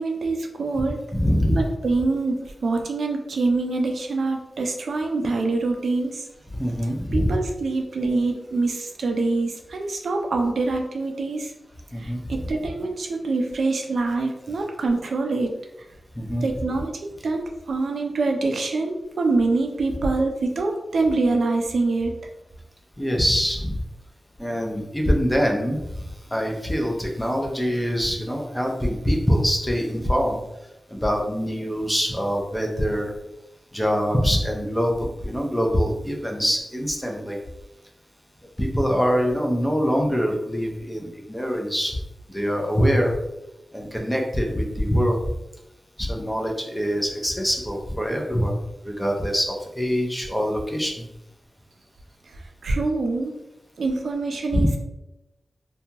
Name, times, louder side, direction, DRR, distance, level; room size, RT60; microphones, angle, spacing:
voice 1, 0.0-1.0 1.5-6.2 7.1-11.5 12.0-15.5 16.4-22.1 52.6-53.4 53.8-54.8, right 3 dB, 70° right, 3 dB, 0.4 m, -25 dB
voice 2, 1.1-1.6 6.6-7.4 11.9-12.2 16.2-16.4 23.0-23.8 24.4-25.8 26.3-30.4 30.9-33.1 33.7-34.9 35.2-37.4 38.6-42.0 42.3-43.1 43.7-45.2 46.0-48.6 48.8-51.0 54.5-54.8, equal, 5° left, 1 dB, 0.4 m, -24 dB
2.6 x 2.2 x 2.8 m, 0.94 s
wide cardioid pair, 155°, 0 cm